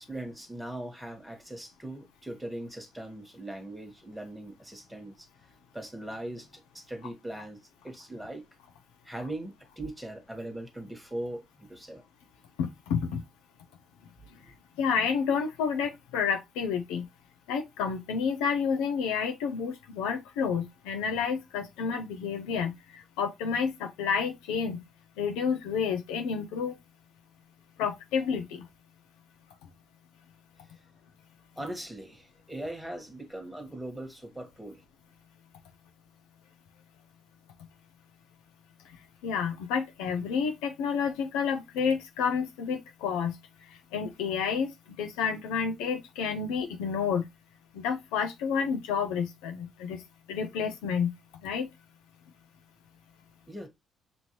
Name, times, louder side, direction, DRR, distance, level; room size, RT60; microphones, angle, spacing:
voice 1, 0.1-5.3 5.7-7.6 7.8-8.4 9.0-12.0 31.6-34.8 53.5-53.7, right 1 dB, 5° right, 1.4 m, -40 dB
voice 2, 12.6-13.2 14.8-17.1 17.5-24.8 25.2-26.7 27.8-28.7 39.2-43.4 43.9-44.7 45.0-47.3 47.7-50.0 50.3-51.1 51.4-51.7, left 6 dB, 85° left, 0.6 m, -30 dB
6.1 x 2.6 x 3.0 m
hypercardioid pair, 60°, 0 cm